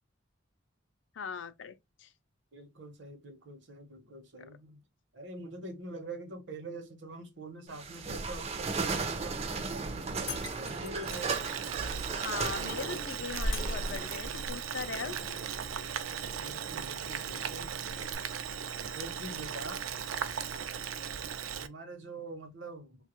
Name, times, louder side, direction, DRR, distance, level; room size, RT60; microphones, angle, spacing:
voice 1, 1.1-2.1 4.4-4.5 12.2-15.4, left 6 dB, 65° left, 0.4 m, -40 dB
voice 2, 2.5-4.8 5.1-11.3 16.4-17.8 18.9-19.8 21.6-23.0, right 2 dB, 60° right, 0.8 m, -45 dB
sound 1, 7.7-18.2, right 3 dB, 30° right, 0.4 m, -36 dB
Shatter, 10.3-11.3 13.5-14.6, left 9 dB, 85° left, 0.7 m, -45 dB
Boiling, 11.1-21.7, right 7 dB, 85° right, 0.4 m, -37 dB
3.2 x 2.3 x 2.8 m
head